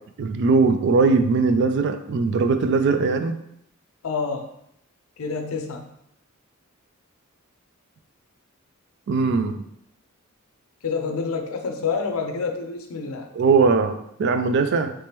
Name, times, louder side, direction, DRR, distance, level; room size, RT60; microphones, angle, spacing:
voice 1, 0.2-3.3 9.1-9.6 13.3-14.9, right 4 dB, 55° right, 8 dB, 0.3 m, -20 dB
voice 2, 4.0-4.5 5.2-5.9 10.8-13.3, left 5 dB, 85° left, 5 dB, 0.5 m, -28 dB
3.1 x 2.9 x 3.4 m, 0.76 s
head